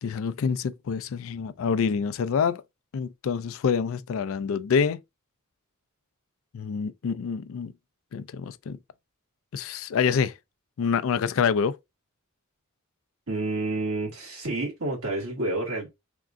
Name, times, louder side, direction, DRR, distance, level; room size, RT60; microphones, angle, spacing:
voice 1, 0.0-2.6 2.9-5.0 6.5-7.7 8.1-8.8 9.5-10.3 10.8-11.8, left 6 dB, 70° left, 0.4 m, -26 dB
voice 2, 13.3-15.9, right 2 dB, 80° right, 1.9 m, -29 dB
3.5 x 2.5 x 3.6 m
head